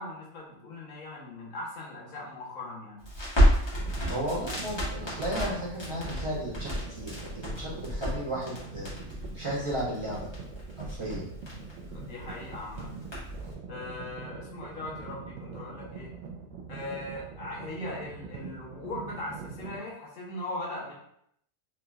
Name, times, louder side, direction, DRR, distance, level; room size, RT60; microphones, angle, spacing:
voice 1, 0.0-3.0 11.9-12.9 13.7-16.1 16.7-20.9, left 2 dB, 90° left, -4 dB, 1.4 m, -39 dB
Crackle, 3.0-13.5, equal, 20° left, 1.2 m, -31 dB
sound 1, 3.7-19.8, right 5 dB, 75° right, 0.9 m, -43 dB
voice 2, 4.1-8.9 9.3-10.3 10.8-11.3, right 1 dB, 25° right, -8 dB, 1.0 m, -34 dB
3.7 x 2.8 x 2.3 m, 0.73 s
omnidirectional pair, 1.3 m